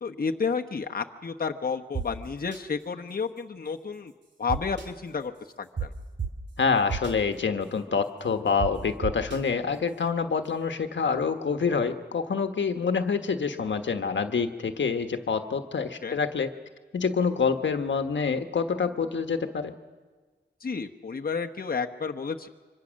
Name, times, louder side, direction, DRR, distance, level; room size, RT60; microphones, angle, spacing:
voice 1, 0.0-4.1 4.4-5.3 5.6-5.9 16.0-16.2 20.6-22.5, left 5 dB, 55° left, 3 dB, 1.0 m, -31 dB
sound 1, 1.9-2.0 2.5-2.6 4.5-4.9 5.8-5.9 6.2-6.3 6.9-7.1 8.6-8.7 9.0-9.4, right 6 dB, 80° right, 2.6 m, -30 dB
voice 2, 6.6-16.5 16.9-19.7, left 5 dB, 85° left, 7 dB, 1.3 m, -27 dB
26.0 x 24.5 x 6.4 m, 1.4 s
wide cardioid pair, 85°, 19 cm